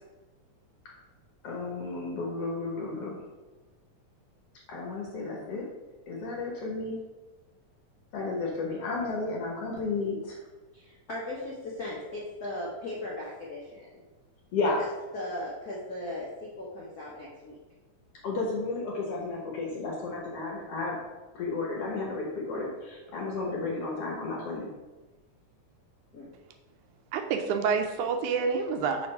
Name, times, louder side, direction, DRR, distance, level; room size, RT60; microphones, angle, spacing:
voice 1, 1.4-3.2 4.7-5.6 6.1-7.0 8.1-10.4 14.5-14.8 18.2-21.0 21.3-24.7, left 3 dB, 60° left, -2 dB, 1.7 m, -32 dB
voice 2, 10.7-14.0 14.8-14.9 15.1-17.6 26.1-26.3, left 1 dB, 85° left, -6 dB, 0.8 m, -38 dB
voice 3, 27.1-29.1, right 5 dB, 80° right, 6 dB, 2.0 m, -28 dB
5.9 x 3.3 x 5.4 m, 1.2 s
omnidirectional pair, 3.5 m